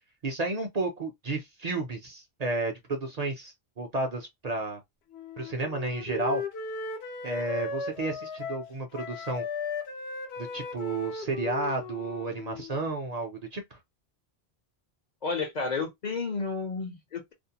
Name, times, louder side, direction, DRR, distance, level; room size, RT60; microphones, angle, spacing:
voice 1, 0.2-4.8 5.4-6.4 7.2-9.4 10.4-13.8, right 2 dB, 45° right, 0.6 m, -32 dB
Wind instrument woodwind instrument, 5.1-8.7 8.9-12.8, left 4 dB, 75° left, 0.9 m, -36 dB
voice 2, 15.2-17.3, left 4 dB, 50° left, 0.6 m, -31 dB
2.6 x 2.1 x 2.8 m
omnidirectional pair, 1.1 m